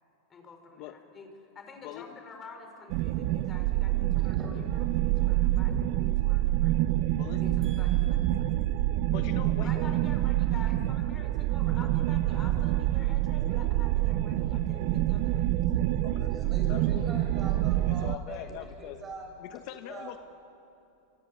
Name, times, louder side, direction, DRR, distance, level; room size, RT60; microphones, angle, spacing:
voice 1, 0.3-6.8 7.4-8.6 9.6-16.4, left 4 dB, 25° left, 5 dB, 4.9 m, -49 dB
voice 2, 1.8-2.2 7.2-7.6 8.8-9.8 16.0-16.3 16.7-17.2 17.8-19.0 19.4-20.2, left 13 dB, 55° left, 7 dB, 1.4 m, -43 dB
sound 1, 2.9-18.2, right 14 dB, 55° right, 0.9 m, -27 dB
voice 3, 7.6-8.9 16.3-19.3 19.7-20.2, right 2 dB, 25° right, 2 dB, 7.8 m, -44 dB
25.0 x 24.0 x 9.6 m, 2.8 s
supercardioid pair, 125°, 0 cm